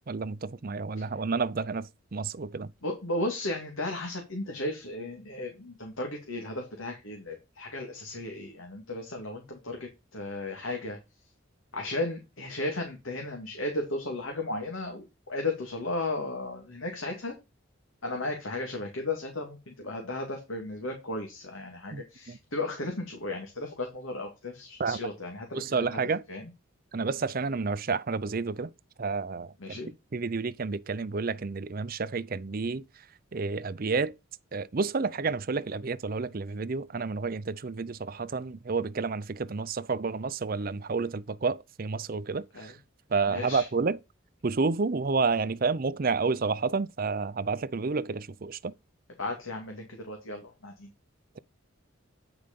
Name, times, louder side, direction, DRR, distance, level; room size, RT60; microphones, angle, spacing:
voice 1, 0.1-2.7 21.9-22.4 24.8-25.0 25.5-26.2 26.9-28.7 29.0-29.8 30.1-32.8 33.3-34.1 34.5-42.7 43.1-44.0 44.4-48.7, right 4 dB, 45° right, 0.5 m, -30 dB
voice 2, 2.8-11.0 11.7-17.3 18.0-26.0 26.3-26.5 29.6-29.9 42.5-42.7 43.3-43.7 49.2-50.9, left 2 dB, 80° left, 2.3 m, -35 dB
9.6 x 5.0 x 5.3 m
head